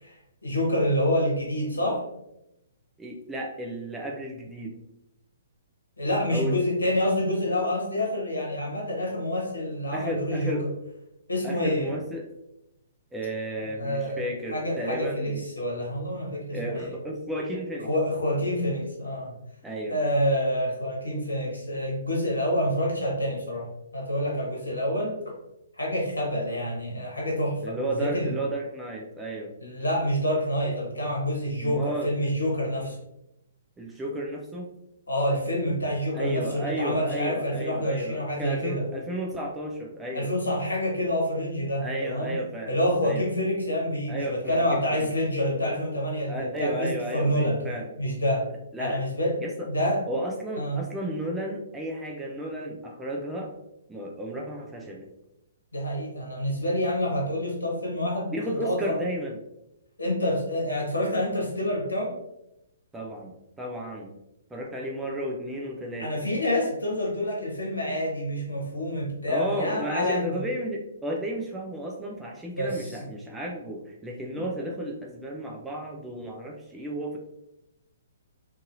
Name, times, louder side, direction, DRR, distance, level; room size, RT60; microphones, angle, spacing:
voice 1, 0.0-2.0 6.0-10.6 11.3-12.0 13.7-14.2 14.5-16.9 17.8-19.3 19.9-25.2 25.8-28.3 29.6-33.0 35.1-38.8 40.1-42.3 42.7-47.6 48.0-48.5 48.8-49.4 49.6-50.0 50.6-50.8 55.7-59.0 60.0-62.1 66.0-70.4 72.6-73.0, equal, 80° left, -2 dB, 1.0 m, -27 dB
voice 2, 3.0-4.7 6.3-6.6 9.9-10.7 11.4-12.3 13.1-15.4 16.5-17.9 19.6-20.0 27.6-29.5 31.6-32.1 33.8-34.7 36.1-40.3 41.8-42.8 43.0-43.3 44.1-45.1 46.3-47.9 48.7-49.0 49.4-49.7 50.1-53.5 53.9-55.1 58.3-59.4 62.9-64.1 64.5-66.2 69.3-77.2, right 1 dB, 10° right, -2 dB, 0.4 m, -33 dB
2.7 x 2.6 x 2.5 m, 0.87 s
figure-of-eight pair, 125°, 0 cm